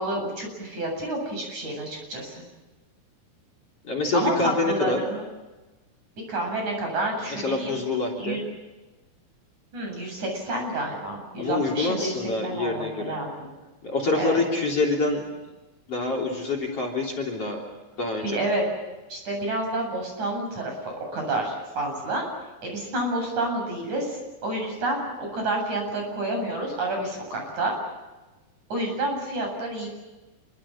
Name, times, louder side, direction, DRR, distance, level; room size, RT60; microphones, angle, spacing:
voice 1, 0.0-2.3 4.1-5.3 6.3-7.8 8.2-8.4 9.7-13.5 14.1-14.4 18.2-18.6 19.1-22.2 22.6-27.7 28.7-29.9, right 1 dB, 50° right, 2 dB, 9.3 m, -29 dB
voice 2, 3.8-5.0 7.3-8.4 11.4-13.1 13.8-15.2 15.9-17.6 18.0-18.4, left 3 dB, 40° left, 4 dB, 4.2 m, -26 dB
27.0 x 24.5 x 7.4 m, 1.1 s
omnidirectional pair, 4.4 m